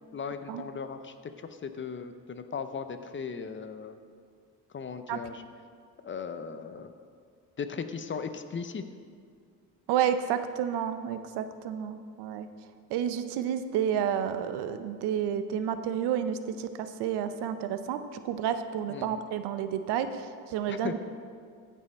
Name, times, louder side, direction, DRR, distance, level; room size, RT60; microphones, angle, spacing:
voice 1, 0.1-4.0 4.7-5.4 6.0-6.9 7.6-8.8 18.9-19.2 20.7-21.0, left 6 dB, 30° left, 9 dB, 0.6 m, -37 dB
voice 2, 9.9-12.5 12.9-21.0, right 9 dB, 85° right, 10 dB, 0.7 m, -30 dB
15.0 x 5.5 x 4.2 m, 2.1 s
cardioid pair, 90°, 39 cm